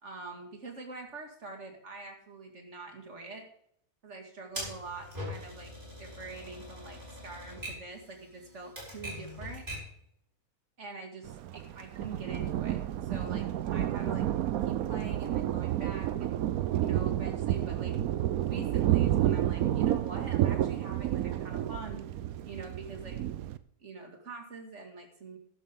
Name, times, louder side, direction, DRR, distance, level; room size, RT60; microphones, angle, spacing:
voice 1, 0.0-3.5 4.0-9.7 10.8-14.3 14.7-16.4 16.8-17.9 18.4-22.1 22.4-23.2 23.8-25.4, right 3 dB, 50° right, 2 dB, 2.5 m, -45 dB
Typewriter, 4.5-10.0, equal, 35° right, 4.8 m, -42 dB
Thunder, 11.2-23.6, right 12 dB, 75° right, 1.1 m, -30 dB
12.5 x 11.0 x 3.7 m, 0.68 s
omnidirectional pair, 1.6 m